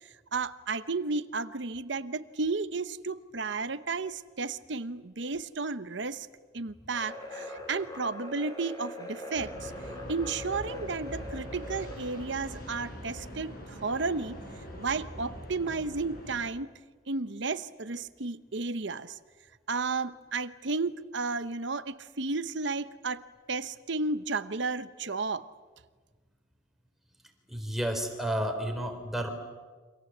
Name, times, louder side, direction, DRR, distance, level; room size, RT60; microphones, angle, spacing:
voice 1, 0.0-6.3 6.5-9.7 10.1-14.4 14.8-16.7 17.1-19.2 19.7-23.2 23.5-25.5, right 4 dB, 60° right, 13 dB, 0.9 m, -33 dB
sound 1, 6.9-12.4, left 1 dB, 20° left, 3.8 m, -42 dB
sound 2, 9.3-16.5, equal, 45° left, 7.0 m, -43 dB
voice 2, 27.5-29.3, right 1 dB, ahead, 4 dB, 3.8 m, -31 dB
28.5 x 26.0 x 7.9 m, 1.4 s
head